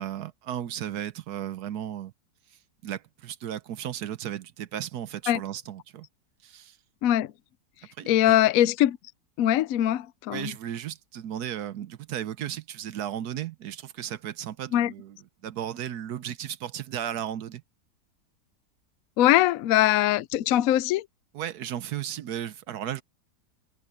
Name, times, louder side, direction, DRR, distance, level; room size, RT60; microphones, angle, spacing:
voice 1, 0.0-2.1 2.8-6.1 6.4-6.8 8.0-8.4 10.3-15.2 15.4-17.6 21.3-23.0, right 10 dB, 70° right, 1.3 m, -35 dB
voice 2, 7.0-7.3 8.1-9.0 9.4-10.5 14.7-14.9 19.2-21.1, left 13 dB, 70° left, 0.9 m, -22 dB
omnidirectional pair, 1.8 m